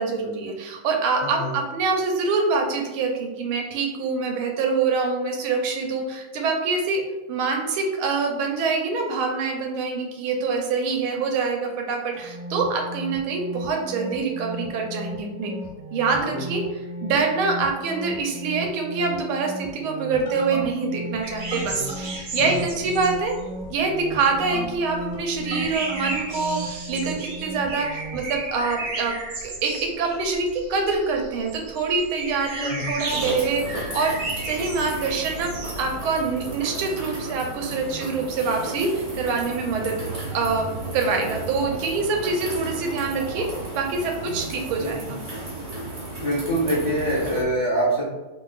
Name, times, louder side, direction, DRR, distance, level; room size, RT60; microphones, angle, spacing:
voice 1, 0.0-7.0 7.3-15.5 15.9-16.6 17.0-23.3 23.7-29.1 29.4-34.1 34.4-40.0 40.3-40.7 40.9-43.5 43.7-45.2, right 4 dB, 85° right, 2 dB, 1.5 m, -25 dB
voice 2, 1.1-1.5 16.2-16.5 21.7-21.9 22.3-22.7 32.6-32.9 44.3-44.4 44.8-45.1 46.2-48.1, right 1 dB, 80° left, -9 dB, 0.4 m, -25 dB
sound 1, 12.1-28.2, right 1 dB, 25° left, 1.2 m, -35 dB
sound 2, 21.2-24.4 24.7-36.0, right 2 dB, 60° right, 1.2 m, -34 dB
sound 3, 33.0-47.4, right 2 dB, 40° right, 0.7 m, -34 dB
4.0 x 3.1 x 2.4 m, 1.1 s
omnidirectional pair, 2.3 m